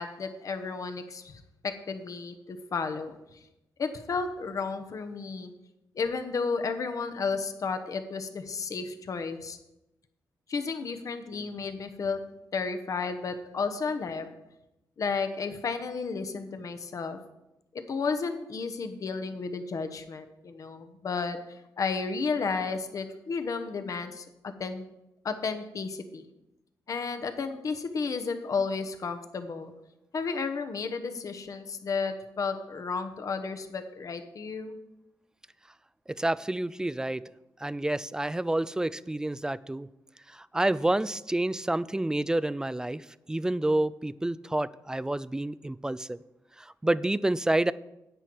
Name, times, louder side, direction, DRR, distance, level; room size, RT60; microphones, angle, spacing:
voice 1, 0.0-3.4 3.8-5.5 5.9-9.6 10.5-12.3 12.5-14.3 15.0-17.2 17.7-24.8 25.2-26.2 26.9-29.7 30.1-34.8, left 4 dB, 50° left, 7 dB, 1.1 m, -33 dB
voice 2, 36.1-37.2 37.6-39.9 40.3-46.2 46.6-47.7, right 1 dB, 10° right, 18 dB, 0.3 m, -29 dB
10.0 x 8.9 x 4.7 m, 0.92 s
cardioid pair, 100°, 7 cm